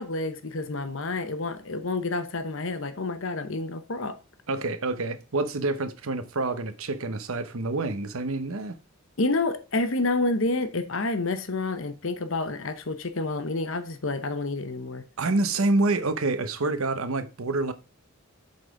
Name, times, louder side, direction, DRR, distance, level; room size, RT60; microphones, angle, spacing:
voice 1, 0.0-4.2 9.2-15.0, left 2 dB, 60° left, 0.9 m, -29 dB
voice 2, 4.5-8.8 15.2-17.7, right 2 dB, 70° right, 0.8 m, -27 dB
7.9 x 4.2 x 5.1 m
head